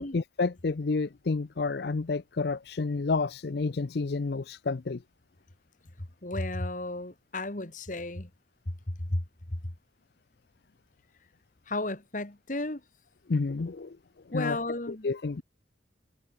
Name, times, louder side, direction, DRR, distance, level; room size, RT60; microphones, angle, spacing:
voice 1, 0.0-5.0 13.3-14.0 14.3-14.6 14.9-15.4, left 3 dB, 60° left, 0.5 m, -30 dB
voice 2, 6.2-8.3 8.7-8.8 9.0-9.7 11.7-12.8 14.3-15.1, left 2 dB, 45° left, 1.9 m, -33 dB
head